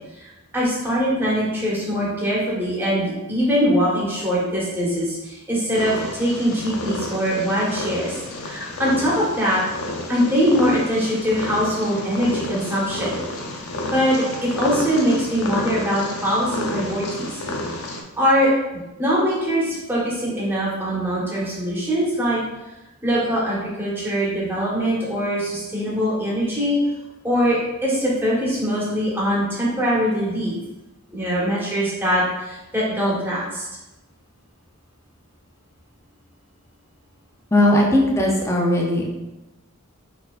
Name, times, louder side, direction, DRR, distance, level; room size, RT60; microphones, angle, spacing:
voice 1, 0.2-9.6 10.1-13.1 13.9-17.4 17.7-17.8 18.2-18.5 19.0-22.4 23.0-26.8 27.2-30.5 31.1-33.7, equal, 10° right, -7 dB, 1.2 m, -22 dB
Purr, 5.7-18.0, left 1 dB, 85° left, 0.6 m, -31 dB
voice 2, 37.5-39.0, left 1 dB, 15° left, -2 dB, 0.6 m, -18 dB
4.1 x 3.9 x 2.4 m, 1.0 s
head